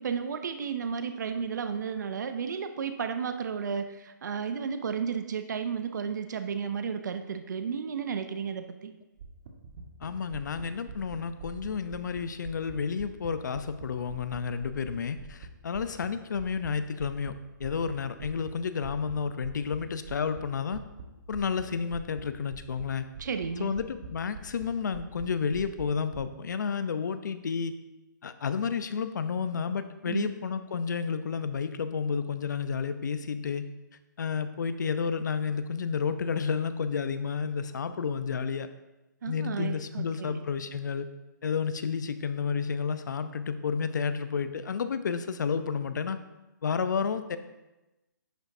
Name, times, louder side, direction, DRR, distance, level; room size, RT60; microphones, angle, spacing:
voice 1, 0.0-8.9 23.2-23.8 30.1-30.3 39.2-40.4, right 6 dB, 60° right, 8 dB, 0.6 m, -33 dB
sound 1, 9.2-13.3 13.5-16.7 17.0-17.3 17.6-17.9 18.2-18.5 18.8-19.2 19.4-19.8 20.0-20.4 20.7-21.0 21.3-21.7 21.9-22.2 22.5-22.8 23.1-24.1 24.3-24.7 24.9-25.2 25.5-26.2, right 6 dB, 40° right, 1.3 m, -44 dB
voice 2, 10.0-17.3 17.6-20.8 21.3-23.0 23.6-27.7 28.2-33.6 34.2-38.7 39.3-41.1 41.4-46.2 46.6-47.4, left 6 dB, 65° left, 11 dB, 0.6 m, -31 dB
10.5 x 6.8 x 2.7 m, 1.0 s
hypercardioid pair, 155°, 11 cm